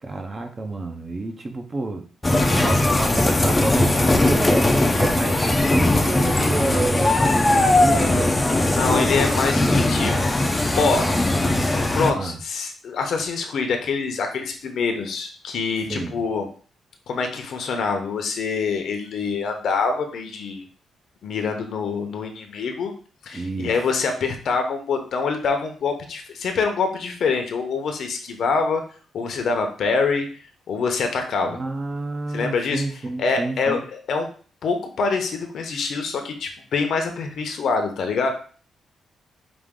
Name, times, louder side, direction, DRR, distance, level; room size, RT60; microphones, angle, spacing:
voice 1, 0.0-2.0 2.4-4.7 4.9-8.4 10.9-11.7 12.1-12.4 15.9-16.2 23.3-23.7 31.5-33.8, right 2 dB, 25° right, 4 dB, 0.6 m, -29 dB
sound 1, 2.2-12.1, left 2 dB, 15° left, 0.5 m, -19 dB
voice 2, 8.7-10.3 10.8-11.1 11.7-16.5 17.1-20.6 21.2-22.9 23.2-28.8 29.1-31.6 32.3-34.3 34.6-38.3, left 4 dB, 60° left, 5 dB, 0.8 m, -25 dB
5.0 x 2.5 x 3.7 m, 0.41 s
cardioid pair, 145°, 0 cm